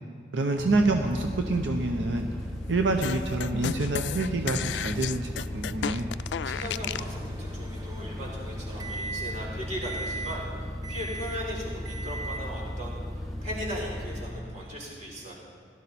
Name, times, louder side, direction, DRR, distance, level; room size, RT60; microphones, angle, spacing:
voice 1, 0.3-2.3 2.7-6.1, right 2 dB, 90° right, 4 dB, 0.8 m, -27 dB
sound 1, 0.6-14.3, left 1 dB, ahead, 3.0 m, -36 dB
sound 2, 3.0-7.1, left 9 dB, 70° left, 0.3 m, -33 dB
voice 2, 6.4-13.0 13.4-15.3, equal, 45° right, -4 dB, 4.2 m, -38 dB
Microwave oven, 6.9-9.5 9.8-10.4 10.8-11.4 11.8-12.5, right 3 dB, 20° right, 0.8 m, -39 dB
17.0 x 12.0 x 4.2 m, 2.2 s
head